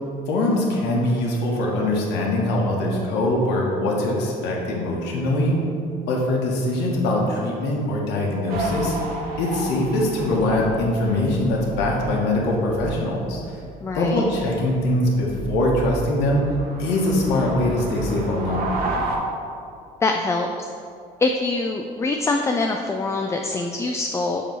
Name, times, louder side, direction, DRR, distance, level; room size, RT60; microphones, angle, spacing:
voice 1, 0.3-5.6 6.1-9.0 9.4-13.4 13.9-16.4 16.8-18.7, left 1 dB, 85° left, -2 dB, 1.2 m, -22 dB
sound 1, 8.5-19.2, right 2 dB, 60° right, 1.0 m, -32 dB
voice 2, 13.8-14.2 20.0-20.5 21.2-24.4, left 3 dB, 15° left, 3 dB, 0.3 m, -24 dB
7.1 x 3.0 x 5.4 m, 2.5 s
cardioid pair, 110°, 17 cm